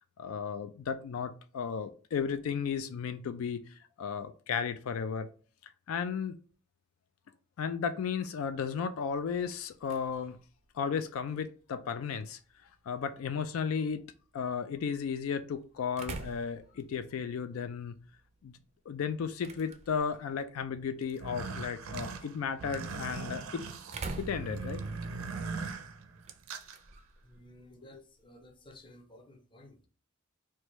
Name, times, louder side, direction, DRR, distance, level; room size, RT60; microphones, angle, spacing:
voice 1, 0.2-5.3 5.6-6.3 7.6-10.4 10.7-12.4 12.9-14.0 14.3-18.0 18.4-18.5 18.9-23.7 24.2-24.8, left 6 dB, 80° left, 0.3 m, -34 dB
sound 1, 9.1-28.9, right 3 dB, 30° right, 0.4 m, -50 dB
sound 2, 21.1-26.8, right 4 dB, 85° right, 0.5 m, -40 dB
voice 2, 27.2-29.9, left 1 dB, 25° left, 0.6 m, -55 dB
4.7 x 2.2 x 3.0 m
head